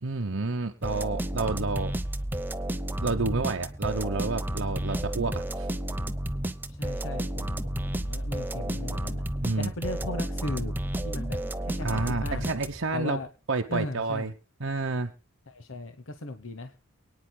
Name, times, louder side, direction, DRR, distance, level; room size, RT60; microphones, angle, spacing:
voice 1, 0.0-1.9 3.0-5.7 9.4-9.7 11.8-13.2 13.5-14.3 14.6-15.1, right 3 dB, 60° right, 4 dB, 0.9 m, -29 dB
sound 1, 0.8-13.0, right 1 dB, 10° right, 0.8 m, -32 dB
voice 2, 6.7-9.2 9.6-10.7 11.0-12.5 12.9-13.3 13.7-14.3 15.5-17.0, left 2 dB, 60° left, 9 dB, 1.0 m, -37 dB
24.0 x 9.7 x 2.2 m, 0.28 s
head